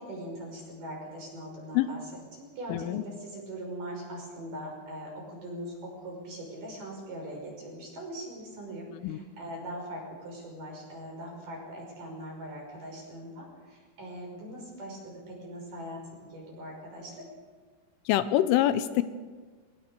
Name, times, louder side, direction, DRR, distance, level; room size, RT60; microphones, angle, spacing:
voice 1, 0.0-2.0 2.3-16.0 16.3-17.2, right 1 dB, 45° right, -1 dB, 7.3 m, -41 dB
voice 2, 2.7-3.0 9.0-9.2 18.1-19.0, left 13 dB, 85° left, 12 dB, 3.3 m, -25 dB
22.5 x 20.0 x 6.8 m, 1.5 s
omnidirectional pair, 5.7 m